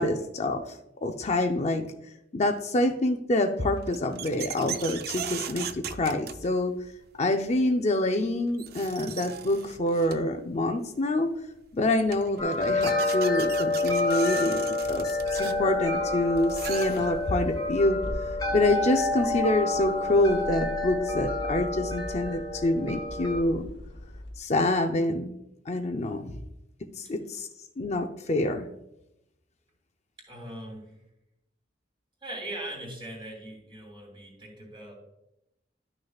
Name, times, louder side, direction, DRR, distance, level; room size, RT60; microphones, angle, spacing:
voice 1, 0.0-1.9 2.3-6.7 7.2-11.3 11.7-18.0 18.5-23.7 24.4-25.4 25.7-26.4 27.0-27.5 27.8-28.7, left 1 dB, 40° left, 5 dB, 0.5 m, -26 dB
sound 1, 3.7-6.9 8.2-8.3 8.5-10.4 11.6-11.7 11.9-17.4, right 8 dB, 60° right, 0.5 m, -39 dB
sound 2, 12.4-23.4, left 2 dB, 20° left, 1.2 m, -28 dB
sound 3, 15.0-24.5, left 1 dB, 80° left, 1.1 m, -41 dB
voice 2, 30.2-31.0 32.2-34.9, right 1 dB, 30° right, 0 dB, 2.8 m, -40 dB
11.5 x 6.4 x 2.4 m, 0.85 s
head